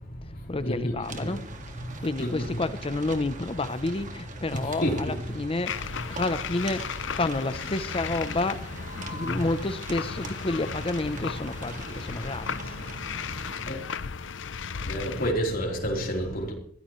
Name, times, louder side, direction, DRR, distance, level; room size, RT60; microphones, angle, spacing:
voice 1, 0.5-1.5 2.0-12.8, left 2 dB, 30° left, 0.7 m, -30 dB
sound 1, 1.0-13.6, right 4 dB, 45° right, 1.9 m, -45 dB
sound 2, 5.7-15.3, left 6 dB, 75° left, 0.6 m, -36 dB
voice 2, 14.9-16.5, equal, 50° left, 3.8 m, -28 dB
22.0 x 16.0 x 3.2 m
head